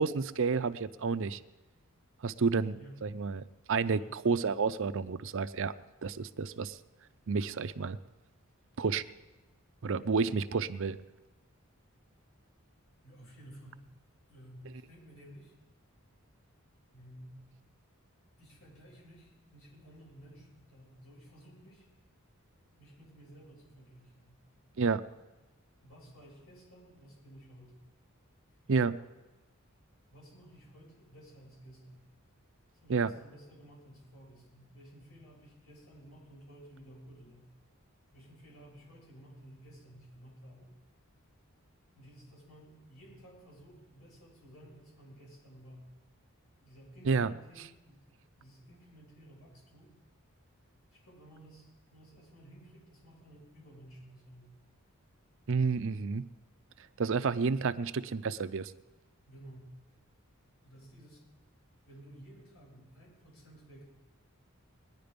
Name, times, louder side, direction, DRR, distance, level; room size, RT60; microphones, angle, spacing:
voice 1, 0.0-1.4 2.2-5.7 6.0-6.8 7.3-8.0 8.8-9.0 9.8-11.0 24.8-25.0 28.7-29.0 32.9-33.1 47.1-47.3 55.5-56.3 57.0-58.7, right 5 dB, 65° right, 14 dB, 0.5 m, -30 dB
voice 2, 13.0-13.9 14.3-15.5 16.9-17.5 18.4-21.9 22.8-24.4 25.8-27.8 30.1-32.0 32.8-37.5 38.1-40.7 41.9-45.9 46.6-48.1 48.4-50.0 50.9-54.6 59.3-59.7 60.6-61.2 61.9-63.8, right 1 dB, 80° left, -3 dB, 6.9 m, -54 dB
20.5 x 10.5 x 5.2 m, 1.1 s
head